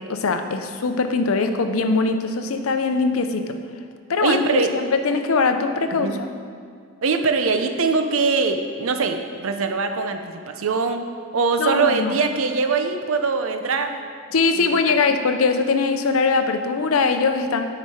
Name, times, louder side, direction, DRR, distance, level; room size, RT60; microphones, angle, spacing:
voice 1, 0.0-3.6 4.1-6.3 11.6-12.2 14.3-17.6, left 4 dB, 80° left, 7 dB, 0.6 m, -21 dB
voice 2, 4.2-4.8 5.9-6.2 7.0-11.0 11.3-14.0 14.6-14.9, right 4 dB, 75° right, 7 dB, 0.6 m, -22 dB
9.7 x 5.0 x 4.3 m, 2.2 s
head